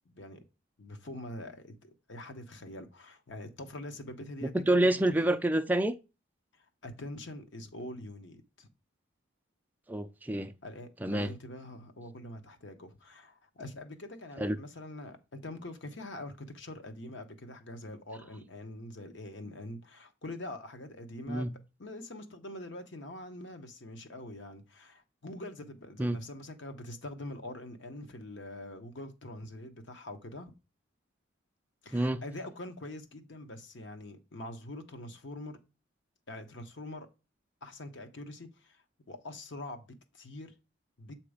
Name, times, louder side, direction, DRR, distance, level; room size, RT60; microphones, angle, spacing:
voice 1, 0.1-0.4 0.8-4.8 5.1-5.2 6.6-8.7 10.6-30.5 31.8-35.6 36.3-37.1 37.6-39.9 40.1-40.5 41.0-41.1, left 1 dB, 60° left, 0.9 m, -44 dB
voice 2, 4.4-5.9 9.9-10.5 11.0-11.3 14.4-14.6 21.3-21.5 26.0-26.2 31.9-32.2, right 1 dB, 10° right, 0.3 m, -27 dB
7.8 x 2.9 x 4.9 m
head